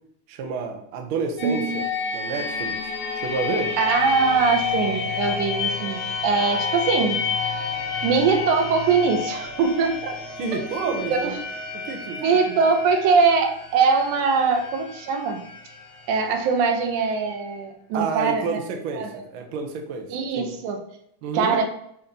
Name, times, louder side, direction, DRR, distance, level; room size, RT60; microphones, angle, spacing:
voice 1, 0.3-1.8 2.1-2.8 3.2-3.8 10.4-11.4 11.7-12.6 17.9-20.5 21.2-21.6, right 4 dB, 70° right, 3 dB, 1.2 m, -29 dB
sound 1, 1.4-17.0, left 5 dB, 60° left, 1.5 m, -30 dB
voice 2, 1.4-1.8 3.8-7.2 8.0-10.1 10.5-11.4 12.2-15.4 16.1-18.6 19.0-19.1 20.1-20.8 21.3-21.6, right 5 dB, 90° right, 4 dB, 2.4 m, -22 dB
6.3 x 2.8 x 5.2 m, 0.74 s
omnidirectional pair, 3.4 m